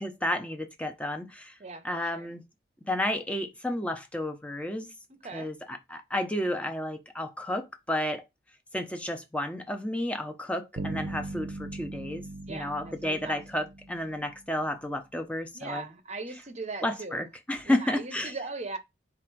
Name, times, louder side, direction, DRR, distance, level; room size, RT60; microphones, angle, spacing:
voice 1, 0.0-1.5 1.8-2.4 2.9-4.9 5.3-8.2 8.7-15.8 16.8-18.3, left 1 dB, 5° left, 0.6 m, -32 dB
voice 2, 1.6-2.3 5.2-5.5 12.5-13.6 15.5-17.3 17.6-18.8, right 3 dB, 35° right, 0.7 m, -39 dB
sound 1, 10.8-14.5, right 2 dB, 85° right, 0.6 m, -39 dB
4.4 x 2.5 x 4.5 m
head